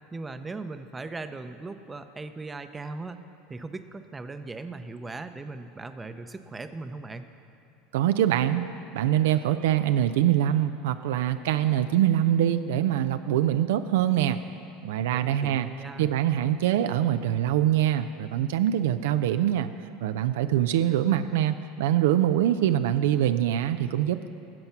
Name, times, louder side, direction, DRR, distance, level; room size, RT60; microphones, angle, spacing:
voice 1, 0.1-7.3 15.0-16.1, right 3 dB, 15° right, 9 dB, 0.7 m, -38 dB
voice 2, 7.9-8.6 8.9-14.4 14.8-15.7 16.0-19.7 20.0-24.3, right 11 dB, 80° right, 10 dB, 0.4 m, -24 dB
13.5 x 7.8 x 5.8 m, 2.8 s
hypercardioid pair, 95°, 0 cm